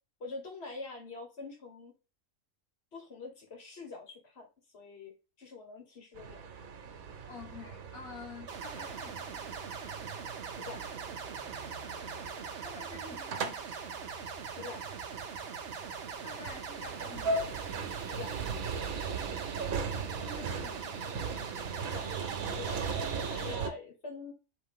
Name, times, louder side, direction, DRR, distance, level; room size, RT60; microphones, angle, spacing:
voice 1, 0.2-1.9 2.9-4.5 4.7-5.1 5.4-6.5 10.6-10.8 14.6-14.8 18.1-18.3 21.9-22.1 22.5-24.3, left 3 dB, 50° left, 1.8 m, -44 dB
sound 1, 6.2-23.7, right 4 dB, 80° right, 1.3 m, -39 dB
voice 2, 7.3-9.4 12.6-13.6 16.2-17.4 20.2-20.9, left 4 dB, 85° left, 1.8 m, -48 dB
sound 2, 8.5-23.5, right 6 dB, 55° right, 0.9 m, -42 dB
4.4 x 3.2 x 3.6 m
omnidirectional pair, 1.4 m